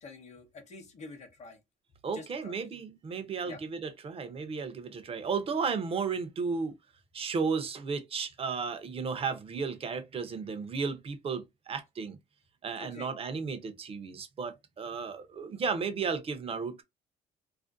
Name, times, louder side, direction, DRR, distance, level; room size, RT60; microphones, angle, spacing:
voice 1, 0.0-1.6 2.1-2.6 3.4-3.6 12.8-13.1, left 3 dB, 40° left, 0.8 m, -47 dB
voice 2, 2.0-6.8 7.1-12.2 12.6-16.8, right 5 dB, 35° right, 0.6 m, -34 dB
2.4 x 2.1 x 2.4 m
cardioid pair, 110°, 17 cm